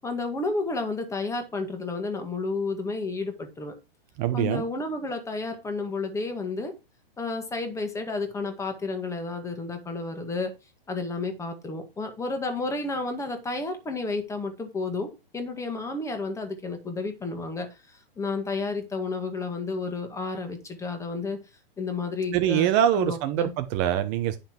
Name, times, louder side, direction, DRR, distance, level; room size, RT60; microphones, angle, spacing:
voice 1, 0.0-3.7 4.3-6.7 7.2-10.6 10.9-21.4 21.8-22.7 23.0-23.5, left 3 dB, 10° left, 1.8 m, -31 dB
voice 2, 4.2-4.6 22.3-24.4, right 11 dB, 35° right, 1.1 m, -24 dB
10.0 x 5.8 x 4.5 m
hypercardioid pair, 140°, 29 cm